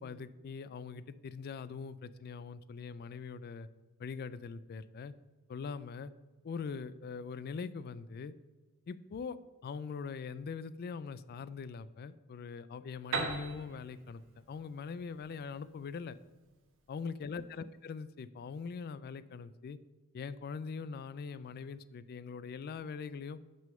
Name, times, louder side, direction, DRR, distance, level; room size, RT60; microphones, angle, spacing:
voice 1, 0.0-3.7 4.0-5.1 5.5-6.1 6.4-8.3 8.9-9.4 9.6-14.2 14.5-16.2 16.9-19.8 20.1-23.4, left 5 dB, 45° left, 15 dB, 0.3 m, -42 dB
Piano, 13.1-16.8, right 4 dB, 60° right, 1.3 m, -40 dB
6.0 x 5.5 x 6.6 m, 1.2 s
head